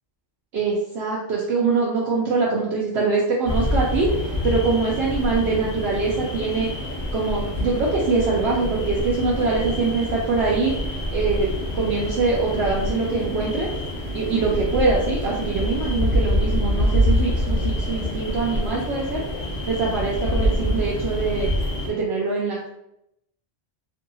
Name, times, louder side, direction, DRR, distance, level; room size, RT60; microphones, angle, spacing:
voice 1, 0.5-6.7 7.1-10.8 11.1-13.7 14.1-19.2 19.7-21.5 21.9-22.7, right 4 dB, 75° right, -4 dB, 0.8 m, -23 dB
sound 1, 3.5-21.9, left 1 dB, 50° left, 0.8 m, -26 dB
2.7 x 2.7 x 2.6 m, 0.83 s
omnidirectional pair, 1.1 m